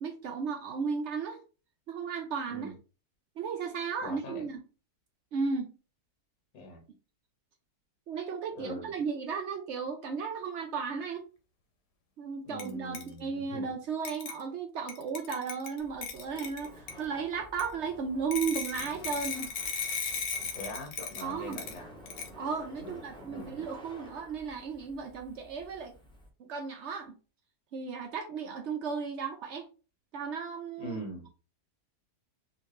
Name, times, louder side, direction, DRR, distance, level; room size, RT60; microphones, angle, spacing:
voice 1, 0.0-1.4 1.9-2.7 3.4-4.6 5.3-5.7 8.1-11.2 12.2-19.5 21.2-21.6 22.3-25.9 26.4-27.2 27.7-29.7 30.1-31.0, right 5 dB, 70° right, 0.6 m, -35 dB
voice 2, 4.0-4.5 6.5-6.8 8.6-8.9 12.4-13.6 20.5-21.9 22.8-23.7 30.8-31.3, left 1 dB, 70° left, 1.6 m, -42 dB
sound 1, 12.6-12.7 13.0-13.1 14.1-14.4 14.9-17.0 17.6-17.7 18.3-21.8 22.1-22.3, left 5 dB, 90° left, 1.3 m, -36 dB
Laughter, 15.8-26.3, equal, 5° left, 0.5 m, -52 dB
3.7 x 2.5 x 3.1 m
omnidirectional pair, 1.7 m